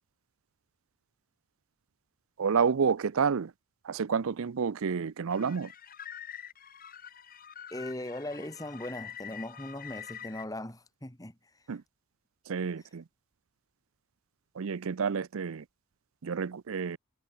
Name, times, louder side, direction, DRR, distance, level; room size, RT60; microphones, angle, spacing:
voice 1, 2.4-3.5 3.8-5.7 11.7-11.8 12.5-13.0 14.5-15.7 16.2-17.0, right 6 dB, 65° right, 0.5 m, -29 dB
sound 1, 5.3-10.5, left 9 dB, 40° left, 2.1 m, -46 dB
voice 2, 7.7-11.3, left 1 dB, 15° left, 1.8 m, -39 dB
head